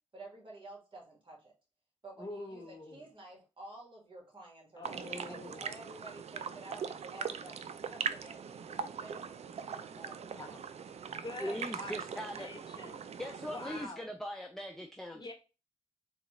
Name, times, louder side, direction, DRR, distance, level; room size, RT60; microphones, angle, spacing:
voice 1, 0.1-1.5 2.0-10.2 11.4-11.5, right 2 dB, 45° right, -1 dB, 1.7 m, -51 dB
voice 2, 2.2-3.1 4.8-5.7 10.4-10.6 11.2-13.0 13.4-14.1 15.1-15.3, left 2 dB, 35° left, 2 dB, 1.1 m, -45 dB
sound 1, 4.8-13.9, right 6 dB, 60° right, 0.4 m, -41 dB
voice 3, 11.4-12.5 13.2-15.2, equal, 5° left, 4 dB, 0.5 m, -40 dB
3.7 x 2.4 x 3.0 m, 0.31 s
cardioid pair, 60°, 13 cm